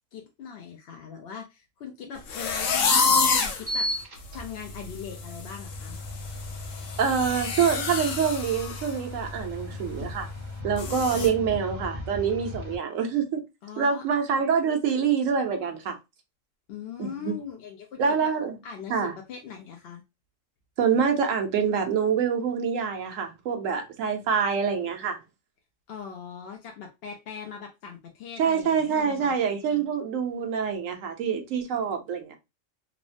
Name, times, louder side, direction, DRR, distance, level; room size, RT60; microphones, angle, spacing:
voice 1, 0.1-3.9 4.3-6.0 10.9-11.4 13.6-14.0 16.7-18.3 18.6-20.0 25.9-29.3, left 7 dB, 65° left, 0.7 m, -40 dB
sound 1, 2.3-3.6 4.2-4.3 4.7-5.0 5.2-8.9 9.2-9.4 9.8-9.9 10.8-11.3, left 4 dB, 85° left, 1.0 m, -27 dB
sound 2, 3.4-12.8, left 1 dB, 35° right, 0.8 m, -37 dB
voice 2, 7.0-10.3 10.6-13.4 13.8-16.0 17.0-17.3 18.0-18.5 18.9-19.1 20.8-25.2 28.4-32.3, right 6 dB, 90° right, 1.1 m, -26 dB
3.1 x 2.1 x 2.5 m
omnidirectional pair, 1.3 m